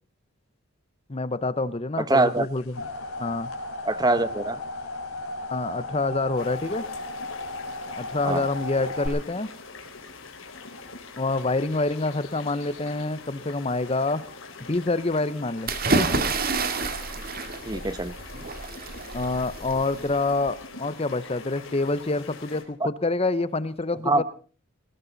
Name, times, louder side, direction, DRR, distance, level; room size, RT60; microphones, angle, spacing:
voice 1, 1.1-2.8 3.2-3.5 5.5-6.8 7.9-9.5 11.2-14.2 14.7-16.1 19.1-24.2, left 2 dB, 30° left, 16 dB, 0.8 m, -27 dB
voice 2, 2.1-2.5 3.8-4.6 8.2-8.4 17.7-18.1 22.8-22.9 24.0-24.2, right 2 dB, 20° right, 14 dB, 0.9 m, -23 dB
sound 1, 2.4-9.1, left 2 dB, 90° left, 4.7 m, -35 dB
sound 2, 6.4-22.6, left 4 dB, 70° left, 3.7 m, -43 dB
sound 3, 15.7-20.5, right 3 dB, 45° right, 2.1 m, -28 dB
19.5 x 18.0 x 4.0 m, 0.39 s
head